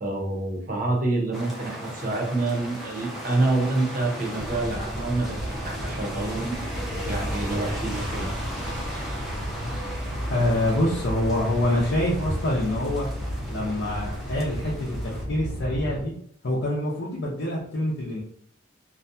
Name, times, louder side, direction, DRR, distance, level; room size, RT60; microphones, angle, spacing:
voice 1, 0.0-6.6 7.1-8.3 8.9-9.1, right 2 dB, 40° right, 0 dB, 0.7 m, -27 dB
sound 1, 1.3-15.2, equal, ahead, 0.5 m, -37 dB
sound 2, 4.4-16.0, equal, 75° right, 1.0 m, -33 dB
voice 2, 10.3-13.1 13.5-16.1 16.4-18.2, left 1 dB, 60° left, -5 dB, 0.6 m, -26 dB
2.5 x 2.2 x 2.6 m, 0.67 s
head